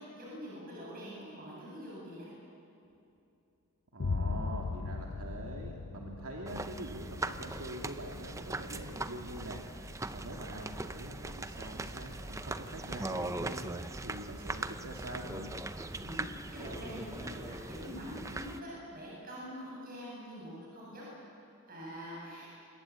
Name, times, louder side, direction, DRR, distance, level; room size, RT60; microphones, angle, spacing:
voice 1, 0.0-2.3 15.9-21.0 21.7-22.5, equal, 40° right, -5 dB, 7.9 m, -44 dB
voice 2, 3.9-15.5, right 1 dB, 85° right, 0 dB, 2.7 m, -44 dB
Boom, 4.0-11.8, left 4 dB, 60° left, 0.6 m, -40 dB
sound 1, 6.5-18.6, right 2 dB, 15° right, 0.6 m, -40 dB
26.0 x 22.5 x 8.6 m, 2.7 s
head